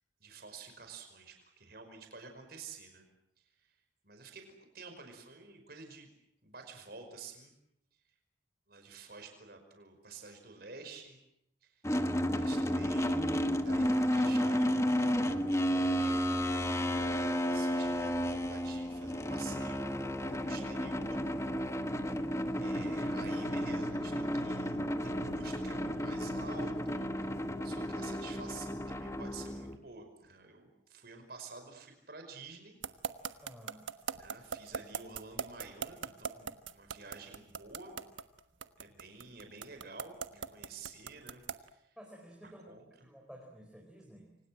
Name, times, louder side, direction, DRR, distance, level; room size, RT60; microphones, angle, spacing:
voice 1, 0.2-3.0 3.6-3.7 4.0-4.5 4.7-6.1 6.4-7.5 8.7-11.2 11.6-11.8 12.2-16.4 17.2-19.9 20.2-21.2 22.0-22.3 22.6-24.8 25.0-27.3 27.6-32.8 34.2-38.0 38.8-42.0 42.7-43.1, right 4 dB, 55° right, 5 dB, 5.3 m, -50 dB
sound 1, 11.8-29.8, equal, 15° left, 1.3 m, -32 dB
sound 2, 32.8-41.7, right 6 dB, 85° right, 1.3 m, -38 dB
voice 2, 33.4-33.9 42.0-44.4, equal, 5° right, 0 dB, 4.3 m, -53 dB
29.0 x 25.5 x 7.7 m, 0.77 s
head